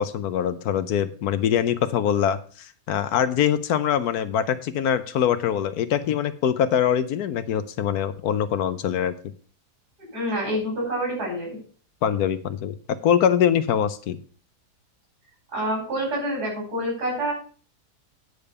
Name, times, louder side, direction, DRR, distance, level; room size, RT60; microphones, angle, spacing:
voice 1, 0.0-9.1 12.0-12.7 13.0-14.2, left 9 dB, 70° left, 12 dB, 1.2 m, -23 dB
voice 2, 10.1-11.6 15.5-17.3, equal, 70° right, -1 dB, 5.8 m, -27 dB
9.7 x 5.2 x 6.7 m, 0.41 s
omnidirectional pair, 1.7 m